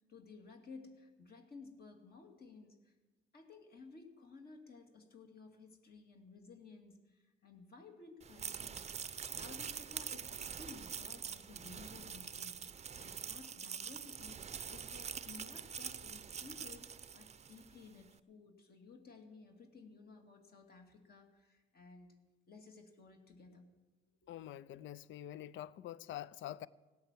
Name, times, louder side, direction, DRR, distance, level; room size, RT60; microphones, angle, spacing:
voice 1, 0.1-2.9 3.3-8.9 9.3-12.6 13.0-14.4 14.7-22.1 22.5-23.7, left 4 dB, 50° left, 2.4 m, -56 dB
sound 1, 8.2-17.7, right 7 dB, 35° right, 0.6 m, -45 dB
voice 2, 24.3-26.7, left 12 dB, 75° left, 0.5 m, -46 dB
16.5 x 8.7 x 7.4 m
cardioid pair, 90°, 20 cm